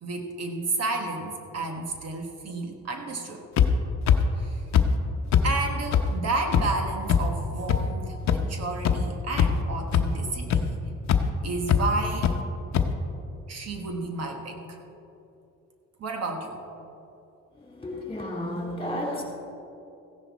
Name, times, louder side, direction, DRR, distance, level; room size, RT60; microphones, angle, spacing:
voice 1, 0.0-3.4 4.4-4.6 5.4-10.8 11.4-12.4 13.5-14.8 16.0-16.6, right 3 dB, 55° right, 3 dB, 1.4 m, -31 dB
sound 1, 3.6-3.7 4.1-4.2 4.7-4.8 5.3-5.4 5.9-6.0 6.5-6.6 7.1-7.2 7.7-7.8 8.3-8.4 8.8-8.9 9.3-9.6 9.9-10.0 10.5-10.6 11.1-11.2 11.7-11.8 12.2-12.3 12.7-12.8, left 9 dB, 65° left, 0.9 m, -19 dB
voice 2, 17.5-19.2, left 1 dB, 20° left, -2 dB, 3.4 m, -32 dB
15.5 x 11.0 x 4.1 m, 2.8 s
cardioid pair, 105°, 30 cm